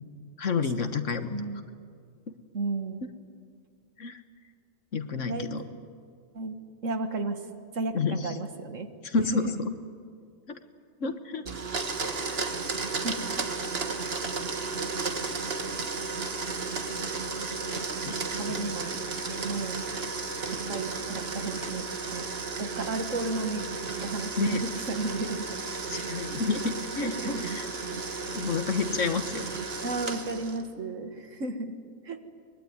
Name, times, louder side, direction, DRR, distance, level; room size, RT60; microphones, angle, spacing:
voice 1, 0.4-1.4 4.0-4.2 4.9-5.6 7.9-8.3 9.0-9.7 10.5-10.6 11.0-11.5 12.3-12.4 15.0-15.1 18.0-18.2 24.4-24.6 25.9-27.7 28.3-29.5, left 5 dB, 65° left, 9 dB, 1.7 m, -29 dB
voice 2, 1.2-1.6 2.5-3.0 5.3-5.5 6.3-6.6 6.8-7.4 7.7-8.9 9.3-9.6 13.0-13.2 18.3-18.9 19.4-19.8 20.7-22.3 22.6-23.6 24.0-25.5 25.8-26.1 27.0-27.6 29.8-31.7 32.0-32.2, right 3 dB, 70° right, 7 dB, 2.0 m, -33 dB
Domestic sounds home sounds, 11.5-30.7, right 4 dB, 50° right, 1.6 m, -33 dB
24.0 x 22.0 x 9.5 m, 2.3 s
omnidirectional pair, 1.4 m